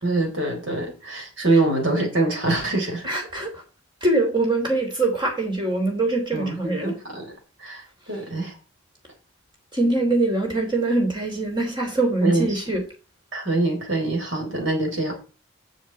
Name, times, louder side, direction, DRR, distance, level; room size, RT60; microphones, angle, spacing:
voice 1, 0.0-3.0 6.3-7.3 7.6-8.5 12.2-12.4 13.3-15.1, right 2 dB, 65° right, 4.0 m, -24 dB
voice 2, 3.0-3.6 4.0-6.9 9.7-12.8, right 2 dB, 20° right, 3.4 m, -23 dB
7.3 x 6.8 x 7.6 m
head